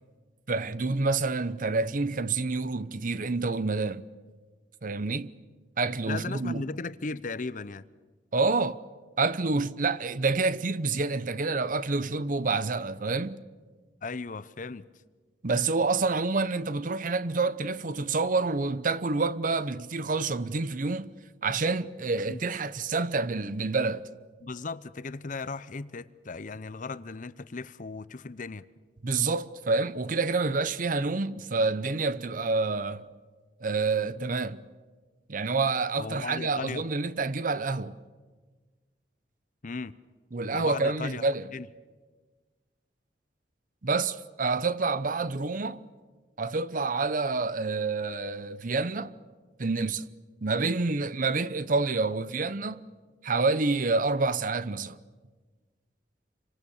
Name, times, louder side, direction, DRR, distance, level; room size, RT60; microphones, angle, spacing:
voice 1, 0.5-4.0 4.8-5.3 5.8-6.7 8.3-8.8 9.2-13.4 15.4-21.1 21.4-24.1 29.0-33.1 33.6-34.6 35.3-38.0 40.3-41.5 43.8-45.9 46.4-49.2 49.6-50.1 50.4-52.8 53.2-55.0, right 3 dB, 50° right, 0.8 m, -28 dB
voice 2, 6.1-7.9 14.0-14.8 22.3-22.4 24.4-28.7 36.0-36.8 39.6-39.9 40.5-41.2 41.5-41.7, left 4 dB, 45° left, 0.7 m, -36 dB
27.5 x 25.0 x 7.1 m
head